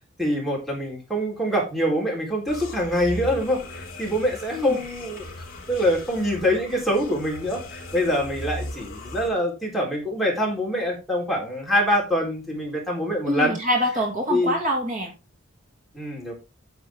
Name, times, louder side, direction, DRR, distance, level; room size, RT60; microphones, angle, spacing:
voice 1, 0.2-5.3 5.7-13.5 14.3-14.5 15.9-16.3, equal, ahead, -2 dB, 4.0 m, -25 dB
sound 1, 2.5-9.3, left 1 dB, 45° left, 3.5 m, -38 dB
voice 2, 13.3-15.1, equal, 40° right, 1 dB, 2.5 m, -25 dB
9.5 x 7.5 x 3.6 m, 0.28 s
head